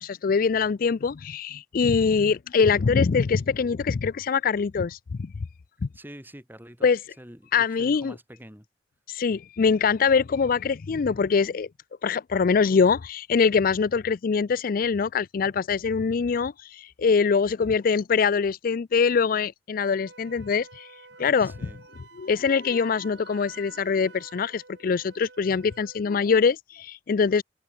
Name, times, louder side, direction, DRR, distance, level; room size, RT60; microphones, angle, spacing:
voice 1, 0.0-5.3 6.8-7.0 7.5-8.1 9.1-11.7 12.0-20.9 21.2-21.5 22.2-27.4, left 5 dB, 55° left, 0.4 m, -23 dB
voice 2, 5.9-6.9 7.2-8.7 21.4-21.8, equal, 10° right, 3.9 m, -46 dB
Wind instrument woodwind instrument, 19.7-26.1, right 4 dB, 90° right, 3.3 m, -49 dB
head